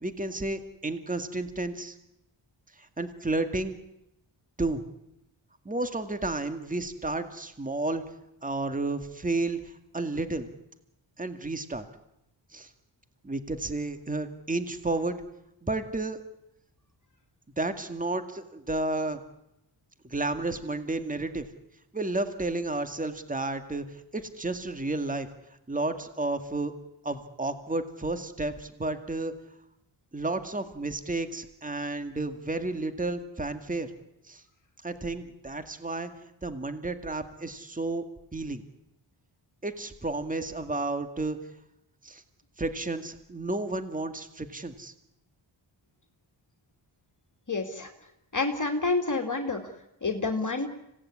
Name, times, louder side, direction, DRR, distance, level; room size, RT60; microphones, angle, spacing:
voice 1, 0.0-2.0 2.8-3.8 4.6-4.8 5.7-8.0 8.4-10.5 11.2-11.9 12.5-12.7 13.2-15.2 15.6-16.2 17.6-19.2 20.0-21.5 21.9-25.3 25.7-26.7 27.0-29.3 30.1-33.9 34.3-34.4 34.8-36.1 36.4-38.0 38.3-38.6 39.6-41.4 42.0-42.2 42.6-44.9, right 2 dB, 15° right, 9 dB, 2.0 m, -32 dB
voice 2, 47.5-47.9 48.3-49.6 50.0-50.7, left 3 dB, 40° left, 5 dB, 2.6 m, -28 dB
25.5 x 18.0 x 9.8 m, 0.87 s
cardioid pair, 65°, 46 cm